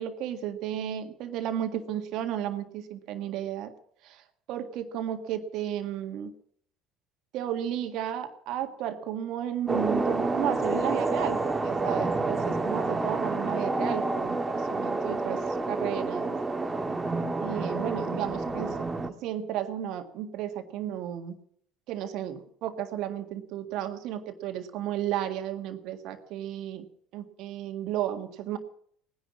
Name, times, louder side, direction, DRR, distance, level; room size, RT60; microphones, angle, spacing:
voice 1, 0.0-3.7 4.0-4.2 4.5-6.3 7.3-15.4 15.7-16.4 17.4-18.8 19.2-21.3 21.9-26.9 27.1-28.6, right 11 dB, 60° right, 7 dB, 1.8 m, -33 dB
sound 1, 9.7-19.1, right 3 dB, 20° right, 1.9 m, -29 dB
19.0 x 10.5 x 7.3 m, 0.64 s
figure-of-eight pair, 60°, 0 cm